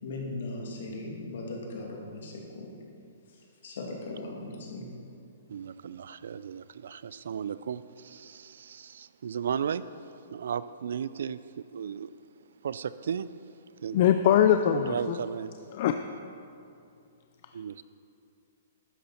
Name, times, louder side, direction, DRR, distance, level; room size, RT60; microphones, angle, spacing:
voice 1, 0.0-2.8 3.6-4.9, left 2 dB, 65° left, -1 dB, 2.5 m, -38 dB
voice 2, 5.5-9.8 10.3-12.1 12.6-13.3 13.8-14.0 14.8-15.5 17.5-17.8, right 7 dB, 70° right, 15 dB, 0.4 m, -35 dB
voice 3, 13.9-15.2 15.7-15.9, left 9 dB, 40° left, 7 dB, 0.4 m, -22 dB
12.0 x 9.4 x 4.4 m, 2.6 s
hypercardioid pair, 165°, 0 cm